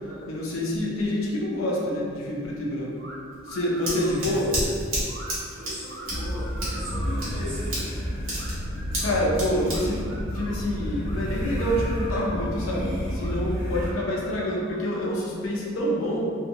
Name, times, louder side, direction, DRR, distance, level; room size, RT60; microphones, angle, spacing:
voice 1, 0.3-2.9 3.5-4.5 9.0-10.1 10.3-16.2, left 1 dB, 85° left, -3 dB, 0.6 m, -27 dB
sound 1, 3.0-3.2 3.4-4.2 5.1-5.3 5.8-7.4 8.4-9.2 9.7-10.6 11.0-11.2 11.5-12.6 13.1-13.4 13.7-14.8, right 1 dB, 60° right, 0.7 m, -43 dB
Scissors, 3.3-11.1, right 1 dB, 80° right, 1.2 m, -33 dB
voice 2, 3.8-4.7 5.5-7.9 14.1-14.5, equal, 40° right, -12 dB, 1.3 m, -39 dB
sound 2, 6.1-13.9, equal, ahead, 0.9 m, -30 dB
2.7 x 2.6 x 2.8 m, 2.3 s
head